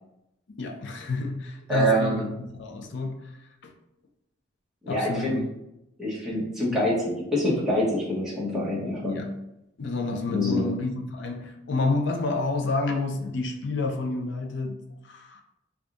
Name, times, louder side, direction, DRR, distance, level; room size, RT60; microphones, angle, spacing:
voice 1, 0.6-2.3 2.6-3.2 3.6-3.7 4.9-5.5 9.1-9.3 9.8-14.8 15.0-15.4, left 3 dB, 60° left, 3 dB, 0.5 m, -29 dB
voice 2, 1.7-2.3 4.8-5.4 6.0-9.2 10.3-10.7, equal, 5° right, -7 dB, 1.0 m, -25 dB
3.5 x 2.3 x 3.8 m, 0.87 s
head